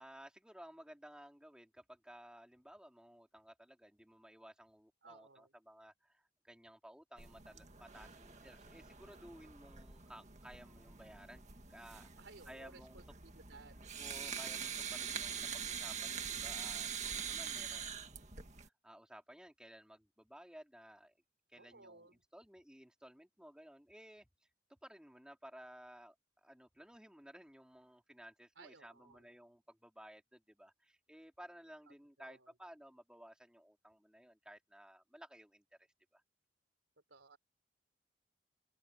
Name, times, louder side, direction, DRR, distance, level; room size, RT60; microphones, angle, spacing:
voice 1, 0.0-11.4 11.7-13.0 14.0-18.1 18.6-21.1 21.5-24.3 24.8-36.2, equal, 5° right, 3.1 m, -57 dB
voice 2, 5.0-5.5 12.2-13.9 21.5-22.2 28.6-29.3 32.2-32.5 37.1-37.4, right 3 dB, 90° right, 3.9 m, -59 dB
sound 1, 7.2-18.7, right 7 dB, 40° right, 1.9 m, -44 dB
open air
head